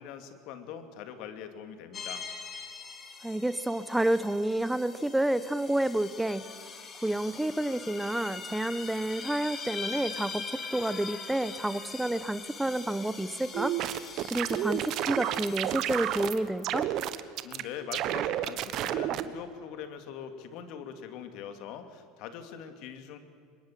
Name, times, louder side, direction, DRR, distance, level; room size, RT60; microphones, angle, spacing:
voice 1, 0.0-2.2 17.4-23.2, left 8 dB, 65° left, 8 dB, 2.7 m, -42 dB
sound 1, 1.9-16.3, left 5 dB, 35° left, 3.5 m, -42 dB
voice 2, 3.2-6.5 7.0-13.8 14.3-16.9, right 1 dB, 5° right, 14 dB, 1.0 m, -29 dB
sound 2, 13.5-16.4 16.6-17.6 17.9-19.2, right 13 dB, 55° right, 1.3 m, -31 dB
25.0 x 21.5 x 7.7 m, 2.2 s
supercardioid pair, 95°, 0 cm